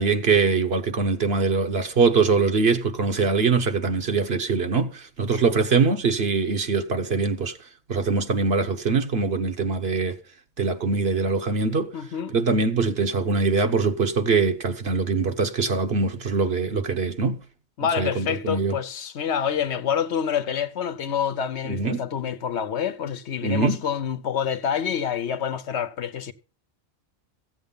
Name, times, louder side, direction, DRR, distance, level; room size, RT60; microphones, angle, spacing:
voice 1, 0.0-7.6 7.9-10.2 10.6-11.9 12.3-17.4 18.0-18.8 21.7-22.0 23.4-23.8, right 4 dB, 70° right, 1.2 m, -23 dB
voice 2, 11.9-12.3 17.8-26.3, left 8 dB, 85° left, 1.2 m, -27 dB
14.5 x 8.0 x 5.4 m
omnidirectional pair, 1.1 m